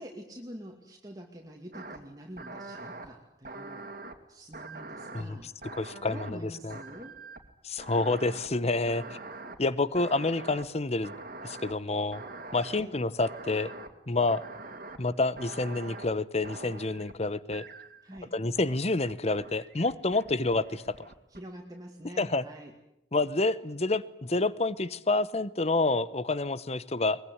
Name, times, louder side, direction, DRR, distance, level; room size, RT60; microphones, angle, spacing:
voice 1, 0.0-3.9 4.3-5.5 6.1-7.2 12.7-12.9 18.0-18.3 21.3-22.7, right 1 dB, 20° right, 1 dB, 2.3 m, -46 dB
sound 1, 1.7-2.0 2.4-3.1 3.4-4.2 4.5-6.4 6.7-7.5 7.8-8.5 8.9-9.6 9.9-10.6 11.0-11.7 12.1-12.8 13.2-13.9 14.3-15.0 15.4-16.1 16.4-17.1 17.5-18.2 18.6-19.1 19.4-21.4, right 2 dB, 50° right, 2.5 m, -44 dB
voice 2, 5.8-6.8 7.6-9.2 9.6-11.1 11.4-12.2 12.5-13.7 14.1-14.4 15.0-17.6 18.3-21.1 22.2-22.4 23.1-27.2, left 2 dB, 35° left, 17 dB, 0.9 m, -28 dB
23.0 x 21.5 x 9.8 m, 0.82 s
head